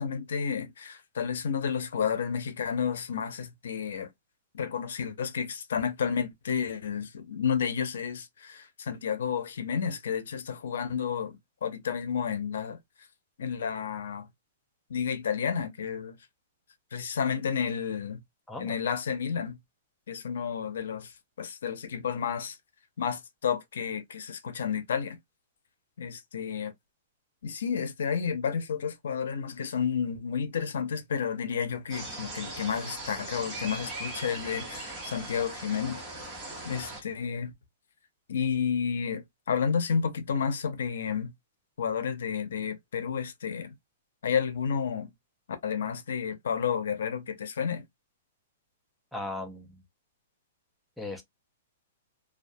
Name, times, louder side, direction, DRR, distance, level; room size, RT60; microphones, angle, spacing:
voice 1, 0.0-4.1 4.5-13.1 13.4-14.3 14.9-16.2 16.9-18.2 18.6-19.6 20.1-22.6 23.0-25.2 26.0-26.7 27.4-36.2 36.6-37.5 38.3-41.3 41.8-43.7 44.2-45.1 45.6-47.8, left 7 dB, 80° left, 0.5 m, -31 dB
sound 1, 31.9-37.0, right 2 dB, 15° right, 0.8 m, -39 dB
voice 2, 49.1-49.8 51.0-51.2, left 2 dB, ahead, 0.4 m, -37 dB
2.3 x 2.1 x 2.5 m
hypercardioid pair, 160°, 0 cm